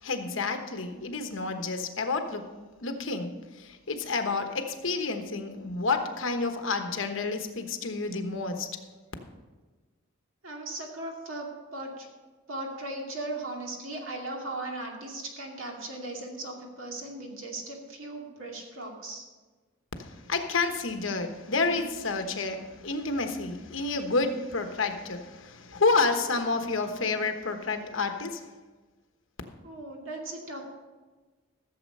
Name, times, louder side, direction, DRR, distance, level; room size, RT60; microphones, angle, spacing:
voice 1, 0.0-2.5 2.8-8.7 20.0-28.4, left 3 dB, 65° left, 6 dB, 1.2 m, -29 dB
voice 2, 10.4-12.1 12.5-19.2 29.6-30.6, right 2 dB, 75° right, 0 dB, 2.5 m, -38 dB
14.5 x 7.4 x 5.4 m, 1.3 s
head